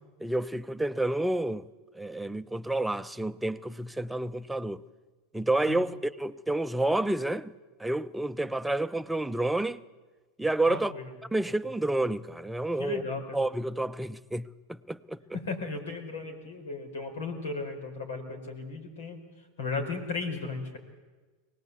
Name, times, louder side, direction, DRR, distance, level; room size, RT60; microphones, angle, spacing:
voice 1, 0.2-1.6 1.9-4.8 5.3-7.5 7.8-9.8 10.4-10.9 11.3-13.0 13.3-15.4, right 2 dB, 5° right, 0.7 m, -29 dB
voice 2, 10.7-11.1 12.8-13.4 15.4-19.2 19.6-20.8, left 3 dB, 75° left, 4.8 m, -35 dB
23.5 x 18.5 x 8.2 m
hypercardioid pair, 90°, 0 cm